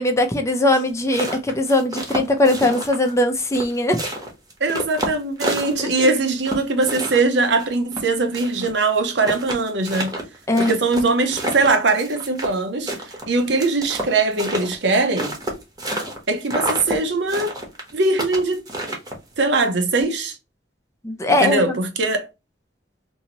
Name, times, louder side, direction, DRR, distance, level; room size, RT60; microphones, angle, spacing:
voice 1, 0.0-4.0 5.8-6.1 10.5-10.7 21.0-21.8, left 1 dB, 15° left, 0.5 m, -20 dB
sound 1, 0.9-3.2 3.5-6.1 6.4-8.7 9.0-9.1 9.2-12.6 12.9-16.2 16.5-17.0 17.3-19.3, right 1 dB, 20° right, 0.9 m, -28 dB
voice 2, 4.6-10.1 10.6-12.9 13.3-15.3 16.3-17.5 17.9-18.7 19.4-20.4 21.3-22.3, right 3 dB, 70° right, 0.7 m, -21 dB
2.7 x 2.7 x 2.8 m
head